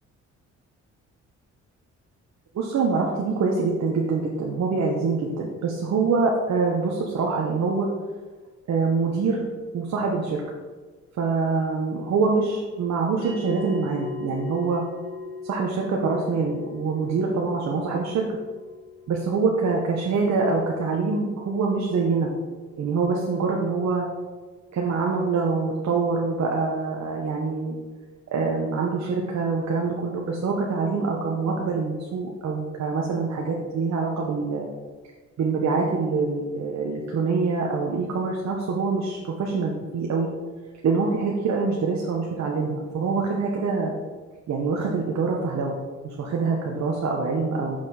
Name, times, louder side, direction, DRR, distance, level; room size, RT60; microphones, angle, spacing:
voice 1, 2.5-7.9 8.7-9.4 9.7-10.4 11.2-14.8 15.4-18.3 19.1-22.3 22.8-24.1 24.7-27.8 28.3-34.7 35.4-40.3 40.8-43.9 44.5-45.8 46.0-47.8, right 4 dB, 60° right, -1 dB, 1.2 m, -25 dB
sound 1, 13.2-23.8, left 5 dB, 80° left, 1.9 m, -42 dB
6.6 x 6.1 x 4.4 m, 1.4 s
cardioid pair, 90°, 30 cm